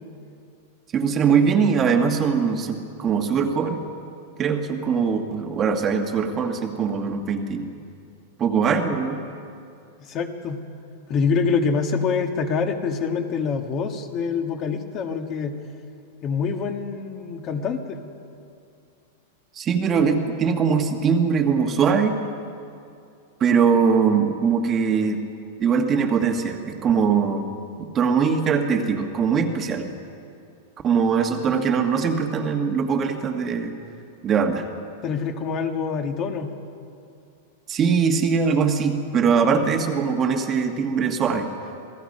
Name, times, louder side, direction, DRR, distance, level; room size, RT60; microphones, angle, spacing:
voice 1, 0.9-3.8 4.4-7.7 8.4-9.2 19.5-22.2 23.4-25.2 25.6-27.5 27.8-29.9 30.8-33.7 34.2-34.6 37.7-41.5, right 6 dB, 25° right, 4 dB, 1.5 m, -21 dB
voice 2, 10.0-10.6 11.1-15.6 16.2-18.0 35.0-36.5, left 5 dB, 30° left, 5 dB, 1.5 m, -25 dB
27.5 x 18.0 x 5.4 m, 2.5 s
supercardioid pair, 150°, 0 cm